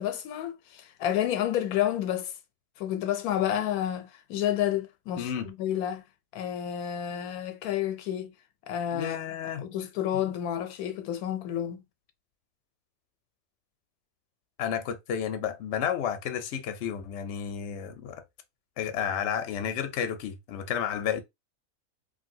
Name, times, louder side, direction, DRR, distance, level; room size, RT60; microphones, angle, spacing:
voice 1, 0.0-2.3 2.8-6.0 6.3-8.3 8.7-9.2 9.6-11.8, left 11 dB, 85° left, 1.0 m, -30 dB
voice 2, 5.2-5.5 8.9-9.6 10.1-10.2 14.6-18.2 18.8-21.2, left 8 dB, 60° left, 0.8 m, -31 dB
3.2 x 2.5 x 2.6 m
omnidirectional pair, 1.5 m